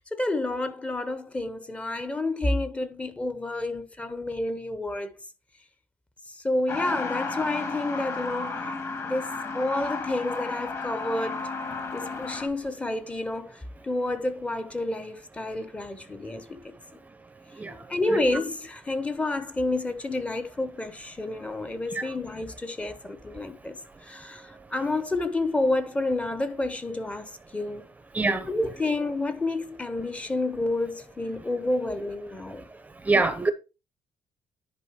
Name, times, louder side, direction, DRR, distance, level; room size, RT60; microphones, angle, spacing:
voice 1, 0.0-5.1 6.3-8.7 9.0-11.4 11.9-16.7 17.7-27.8 28.5-32.7 33.1-33.2, left 2 dB, 15° left, 0.9 m, -29 dB
Truck, 6.7-12.5, left 3 dB, 30° left, 1.7 m, -33 dB
voice 2, 28.1-28.5 33.0-33.5, right 3 dB, 15° right, 0.7 m, -24 dB
10.5 x 4.0 x 4.6 m
cardioid pair, 130°, 9 cm